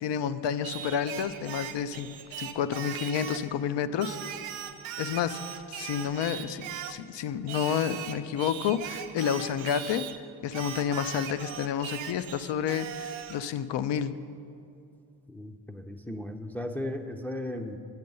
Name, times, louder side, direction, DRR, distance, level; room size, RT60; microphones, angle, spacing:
voice 1, 0.0-2.1 2.4-4.2 5.0-5.4 5.7-10.1 10.4-14.1, left 8 dB, 65° left, 12 dB, 0.6 m, -30 dB
Singing, 0.6-3.5 4.0-7.0 7.5-10.2 10.5-13.4, right 9 dB, 80° right, 0.7 m, -39 dB
voice 2, 15.3-17.8, left 1 dB, 5° left, 3 dB, 0.6 m, -36 dB
9.2 x 7.6 x 5.5 m, 2.5 s
supercardioid pair, 60°, 46 cm